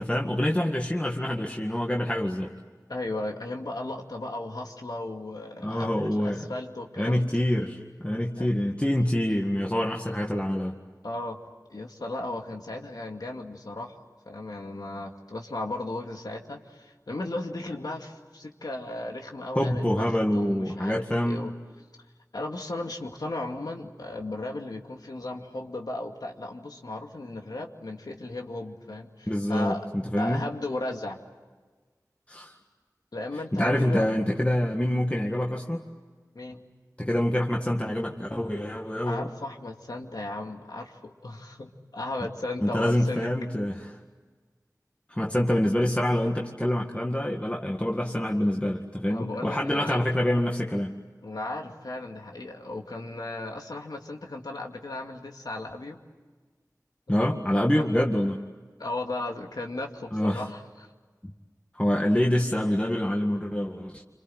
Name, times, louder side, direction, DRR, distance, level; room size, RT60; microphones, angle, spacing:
voice 1, 0.0-2.5 5.6-6.5 7.0-10.8 19.6-21.5 29.3-30.4 32.3-32.5 33.5-35.8 37.0-39.3 42.6-43.9 45.1-50.9 57.1-58.4 60.1-60.5 61.7-64.0, left 1 dB, 20° left, 0 dB, 1.9 m, -26 dB
voice 2, 2.9-7.2 8.4-8.5 11.0-11.4 11.7-21.5 22.3-29.8 30.2-31.2 33.1-34.1 36.3-36.6 39.0-43.3 49.1-50.1 51.2-56.0 57.1-57.4 57.7-58.0 58.8-60.9, left 2 dB, 80° left, 2 dB, 2.4 m, -36 dB
28.0 x 26.5 x 7.8 m, 1.4 s
wide cardioid pair, 40°, 7 cm